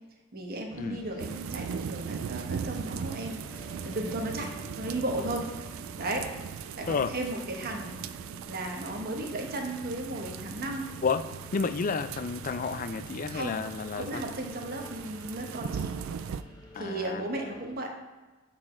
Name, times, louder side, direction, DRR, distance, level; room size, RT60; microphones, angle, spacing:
voice 1, 0.3-5.5 6.0-6.3 6.8-7.9 8.5-10.9 13.3-13.6 14.0-15.9 16.7-17.9, right 1 dB, 50° right, 2 dB, 1.1 m, -35 dB
sound 1, 0.7-17.7, left 1 dB, 20° left, 1.1 m, -50 dB
sound 2, 1.2-16.4, right 7 dB, 80° right, 0.3 m, -39 dB
voice 2, 11.5-14.2 16.7-17.2, left 5 dB, 40° left, 12 dB, 0.4 m, -31 dB
8.7 x 4.1 x 4.3 m, 1.2 s
head